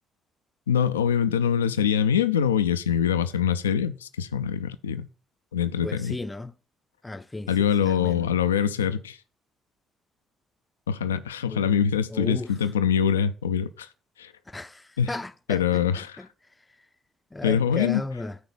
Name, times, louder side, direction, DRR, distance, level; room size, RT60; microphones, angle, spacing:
voice 1, 0.7-5.1 5.5-6.1 7.5-9.2 10.9-13.9 14.2-14.3 15.0-15.1 15.5-16.2 17.4-18.0, left 8 dB, 90° left, 0.4 m, -24 dB
voice 2, 5.8-6.5 7.0-8.3 11.5-11.7 12.1-12.5 14.5-16.3 17.3-18.4, left 2 dB, 20° left, 0.6 m, -35 dB
9.5 x 4.0 x 7.0 m
hypercardioid pair, 50°, 0 cm